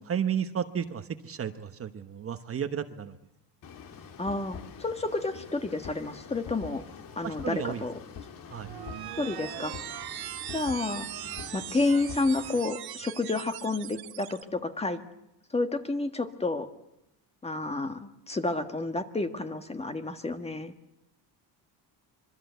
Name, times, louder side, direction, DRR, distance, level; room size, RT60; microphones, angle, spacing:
voice 1, 0.1-3.2 7.2-7.8 8.5-8.7, right 8 dB, 35° right, 9 dB, 1.2 m, -32 dB
sound 1, 3.6-12.6, left 7 dB, 50° left, 2.4 m, -45 dB
voice 2, 4.2-6.8 7.1-8.0 9.2-9.7 10.5-11.1 11.5-15.0 15.5-16.7 17.4-20.7, left 3 dB, 15° left, 8 dB, 1.6 m, -30 dB
sound 2, 8.5-14.4, right 13 dB, 60° right, 1.3 m, -40 dB
25.5 x 23.0 x 8.2 m, 0.85 s
cardioid pair, 150°, 42 cm